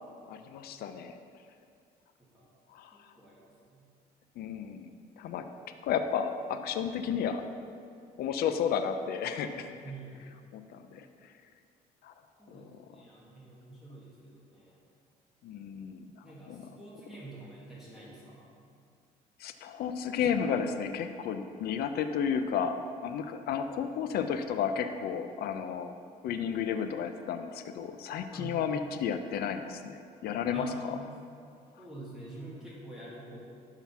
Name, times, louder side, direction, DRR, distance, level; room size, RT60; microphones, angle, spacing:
voice 1, 0.3-1.2 2.7-2.9 4.4-5.4 5.8-7.4 8.2-9.7 10.5-11.0 12.0-12.1 12.5-12.7 15.4-16.0 16.5-16.6 19.4-22.8 23.0-25.9 26.2-30.0 30.2-31.0, left 7 dB, 65° left, 8 dB, 0.6 m, -32 dB
voice 2, 2.9-3.8 9.7-10.3 12.4-14.8 16.2-18.5 28.3-28.6 30.5-31.1 31.8-33.4, right 2 dB, ahead, -9 dB, 2.3 m, -47 dB
11.5 x 3.9 x 5.8 m, 2.3 s
cardioid pair, 110°, 17 cm